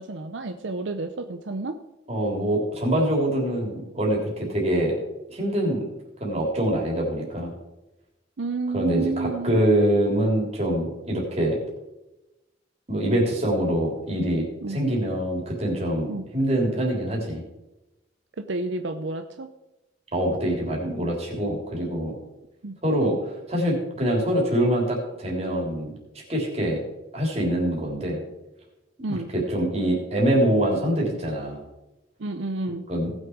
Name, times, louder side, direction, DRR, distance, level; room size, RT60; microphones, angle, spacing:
voice 1, 0.0-1.8 8.4-9.6 14.6-14.8 16.1-16.2 18.4-19.5 22.6-22.8 29.0-29.3 32.2-32.9, right 3 dB, 80° right, 7 dB, 0.7 m, -30 dB
voice 2, 2.1-5.0 5.3-5.9 6.2-7.5 8.7-11.6 12.9-17.4 20.1-22.2 22.8-25.9 26.3-26.8 27.1-28.2 29.1-31.6 32.9-33.1, right 1 dB, 35° right, -2 dB, 3.5 m, -24 dB
18.0 x 6.5 x 4.7 m, 0.99 s
head